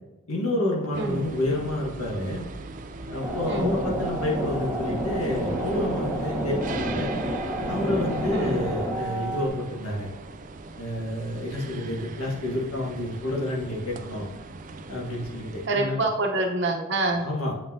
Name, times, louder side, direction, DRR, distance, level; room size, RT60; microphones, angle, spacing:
voice 1, 0.3-2.5 3.1-7.1 7.7-10.1 10.8-14.3 14.9-16.0 17.2-17.5, left 1 dB, 75° left, -2 dB, 1.7 m, -29 dB
sound 1, 0.9-15.7, right 3 dB, 35° right, 0.4 m, -40 dB
sound 2, 3.2-9.5, right 1 dB, 5° right, 0.9 m, -29 dB
voice 2, 15.7-17.2, right 2 dB, 50° right, 2 dB, 1.0 m, -26 dB
8.2 x 5.2 x 2.8 m, 1.1 s
head